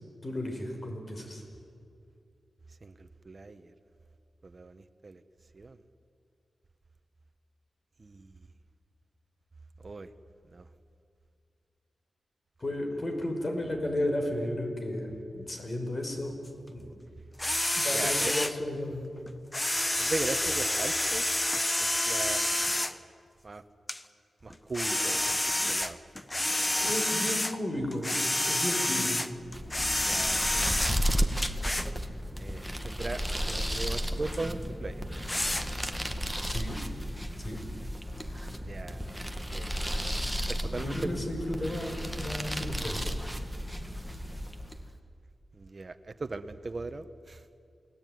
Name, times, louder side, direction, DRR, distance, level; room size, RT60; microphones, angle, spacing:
voice 1, 0.2-1.4 12.6-16.4 16.7-17.0 17.7-19.1 26.8-28.1 28.5-29.2 36.5-36.8 37.4-37.6 40.8-43.0, left 1 dB, 35° left, 3 dB, 5.7 m, -33 dB
voice 2, 2.8-3.7 4.4-5.2 5.5-5.8 8.0-8.5 9.8-10.1 10.5-10.7 17.8-18.3 20.0-21.3 21.5-23.0 23.4-23.6 24.4-26.0 30.0-31.0 32.4-35.1 35.3-35.6 38.6-39.7 40.5-41.2 45.5-47.4, right 3 dB, 40° right, 10 dB, 1.4 m, -39 dB
sound 1, 17.4-18.6 19.3-23.0 23.9-24.0 24.5-27.6 27.9-31.0 31.4-31.9 32.8-32.9 33.5-33.8 34.3-34.4 35.3-35.9, left 1 dB, 15° left, 1.1 m, -29 dB
sound 2, 29.4-44.9, equal, ahead, 2.0 m, -33 dB
29.0 x 20.5 x 9.6 m, 2.4 s
wide cardioid pair, 90°, 0 cm